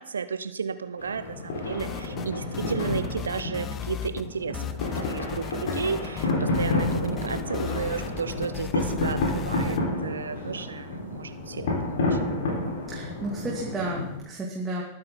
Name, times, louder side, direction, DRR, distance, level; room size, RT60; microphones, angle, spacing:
voice 1, 0.0-12.2, right 6 dB, 70° right, 13 dB, 0.6 m, -33 dB
sound 1, 1.0-14.2, left 2 dB, 60° left, 4.0 m, -30 dB
sound 2, 1.8-2.3 2.5-4.3 4.5-9.8, left 9 dB, 25° left, 0.8 m, -36 dB
voice 2, 12.9-14.8, right 2 dB, 15° right, -3 dB, 2.5 m, -32 dB
21.0 x 9.8 x 3.9 m, 0.76 s
figure-of-eight pair, 90°, 0 cm